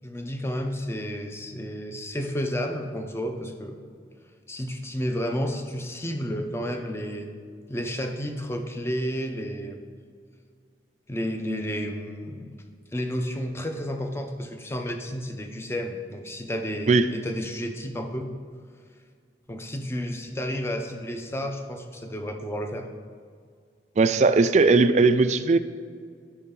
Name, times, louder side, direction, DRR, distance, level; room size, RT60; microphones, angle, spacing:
voice 1, 0.0-3.8 4.5-7.3 7.7-9.8 11.1-12.5 12.9-18.3 19.5-22.9, equal, 15° left, 5 dB, 0.6 m, -31 dB
voice 2, 24.0-25.6, right 3 dB, 40° right, 11 dB, 0.3 m, -18 dB
9.7 x 5.5 x 3.8 m, 2.1 s
head